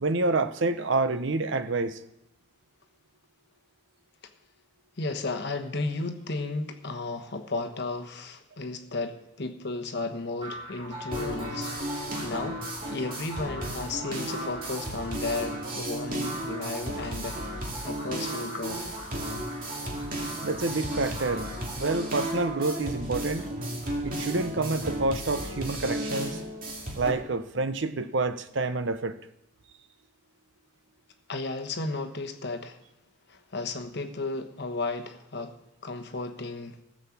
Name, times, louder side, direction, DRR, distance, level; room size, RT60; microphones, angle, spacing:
voice 1, 0.0-2.0 20.4-21.5 21.8-23.5 24.0-26.4 27.0-29.2, right 3 dB, 60° right, 11 dB, 0.7 m, -28 dB
voice 2, 5.0-12.6 12.9-17.6 17.8-19.0 31.3-32.8 33.3-35.5 35.8-36.8, left 3 dB, 50° left, 7 dB, 1.1 m, -34 dB
sound 1, 10.4-22.9, right 1 dB, 25° right, 5.9 m, -41 dB
sound 2, 11.1-27.1, right 1 dB, 40° right, 2.3 m, -34 dB
15.0 x 6.3 x 7.1 m, 0.88 s
head